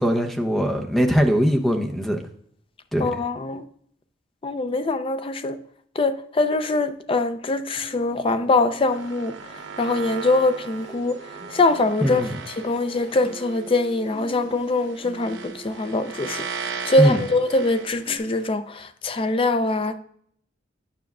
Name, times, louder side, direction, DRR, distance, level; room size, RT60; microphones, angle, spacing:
voice 1, 0.0-2.2 2.9-3.1 12.0-12.3 17.0-17.2, equal, ahead, 0.7 m, -21 dB
voice 2, 3.0-3.6 4.4-5.6 6.0-9.4 9.8-11.2 11.5-12.3 12.6-16.5 16.9-20.0, left 2 dB, 30° left, 0.4 m, -23 dB
sound 1, 7.7-18.2, right 2 dB, 40° right, 2.6 m, -45 dB
sound 2, 8.9-18.5, right 5 dB, 80° right, 1.0 m, -38 dB
9.3 x 5.8 x 2.4 m
head